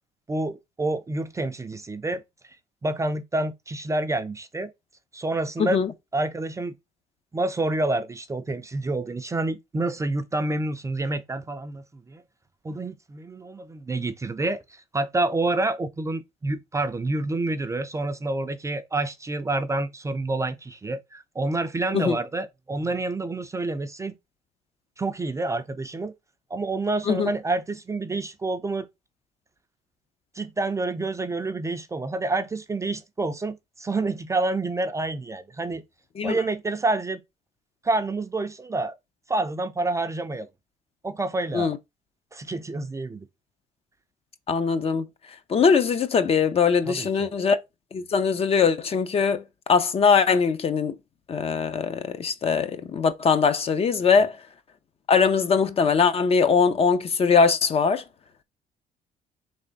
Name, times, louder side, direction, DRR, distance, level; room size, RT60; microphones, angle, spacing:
voice 1, 0.3-2.6 2.8-4.7 5.1-5.8 6.1-6.7 7.3-12.2 12.6-24.1 25.0-26.1 26.5-28.9 30.4-35.8 36.2-37.2 37.8-38.9 39.3-40.5 41.0-41.7 42.3-43.3 46.9-47.3, right 2 dB, 15° right, 0.4 m, -28 dB
voice 2, 5.6-5.9 21.9-22.2 27.1-27.3 36.2-36.4 41.5-41.8 44.5-45.0 45.5-47.6 47.9-49.4 49.7-50.9 51.3-54.3 55.1-58.0, left 5 dB, 35° left, 0.5 m, -21 dB
3.4 x 3.2 x 3.9 m
cardioid pair, 110°, 17 cm